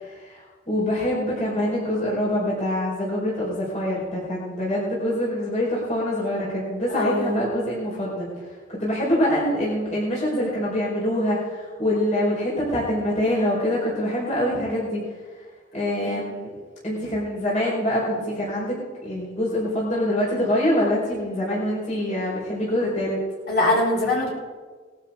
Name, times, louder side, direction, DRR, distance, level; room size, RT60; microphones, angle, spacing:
voice 1, 0.0-8.3 8.7-15.0 15.7-16.5 16.8-23.2, left 1 dB, 40° left, -6 dB, 4.6 m, -25 dB
voice 2, 6.9-7.4 16.0-16.2 23.5-24.3, left 2 dB, 60° left, -5 dB, 5.4 m, -22 dB
20.0 x 12.0 x 3.7 m, 1.4 s
head